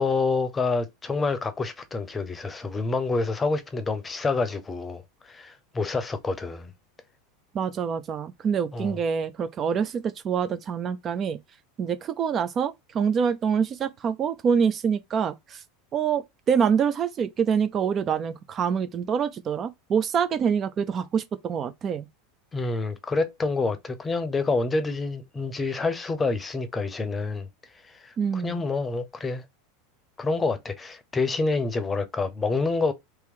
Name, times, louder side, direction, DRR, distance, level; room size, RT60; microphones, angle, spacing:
voice 1, 0.0-6.7 8.7-8.9 22.5-27.5 27.8-29.4 30.2-32.9, left 3 dB, 20° left, 0.8 m, -27 dB
voice 2, 7.5-11.4 11.8-15.6 15.9-22.1 28.2-28.6, right 7 dB, 35° right, 0.5 m, -26 dB
3.1 x 3.0 x 3.6 m
hypercardioid pair, 85°, 0 cm